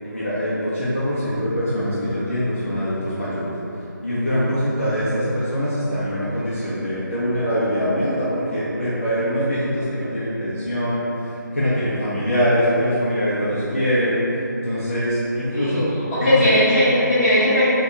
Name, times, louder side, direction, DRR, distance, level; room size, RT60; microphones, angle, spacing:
voice 1, 0.0-3.5 4.0-14.2 14.6-16.5, equal, 40° left, -10 dB, 0.5 m, -23 dB
voice 2, 16.1-17.6, left 1 dB, 10° left, -20 dB, 0.9 m, -18 dB
2.7 x 2.3 x 3.7 m, 3.0 s
figure-of-eight pair, 175°, 11 cm